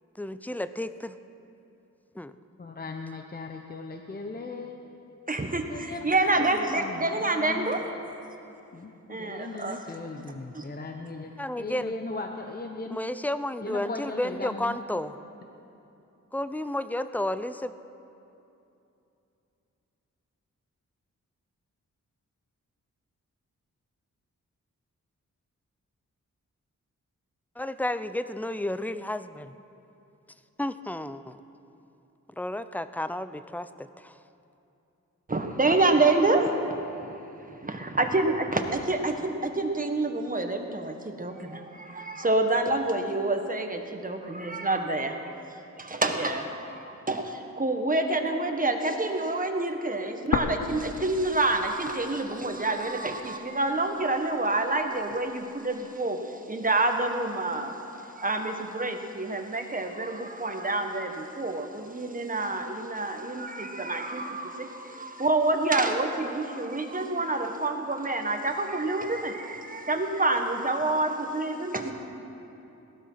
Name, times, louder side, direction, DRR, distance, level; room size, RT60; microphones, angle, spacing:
voice 1, 0.2-1.2 2.2-2.4 11.4-11.9 12.9-15.1 16.3-17.7 27.6-29.5 30.6-31.4 32.4-34.2, left 1 dB, 5° left, 12 dB, 0.5 m, -32 dB
voice 2, 2.6-5.1 5.7-8.0 8.7-11.3 11.6-13.0 13.6-14.8, left 3 dB, 30° left, 4 dB, 0.9 m, -38 dB
voice 3, 5.3-7.9 9.1-10.2 10.5-10.6 35.3-37.2 37.5-45.3 45.8-71.9, right 2 dB, 25° right, 4 dB, 1.5 m, -28 dB
sound 1, 50.3-52.3 52.6-52.7 53.4-54.3, left 6 dB, 70° left, 0.8 m, -32 dB
18.5 x 12.5 x 5.7 m, 2.9 s
wide cardioid pair, 90°, 31 cm